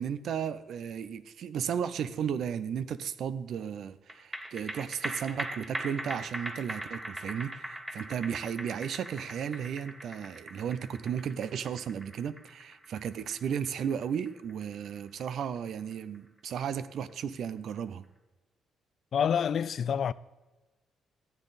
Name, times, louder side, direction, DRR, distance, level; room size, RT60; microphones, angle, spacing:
voice 1, 0.0-18.0, right 8 dB, 65° right, 0.6 m, -34 dB
sound 1, 4.1-16.8 17.1-17.2, right 1 dB, 15° right, 1.1 m, -41 dB
voice 2, 19.1-20.1, left 8 dB, 55° left, 0.3 m, -27 dB
14.0 x 8.1 x 4.1 m
cardioid pair, 90°, 0 cm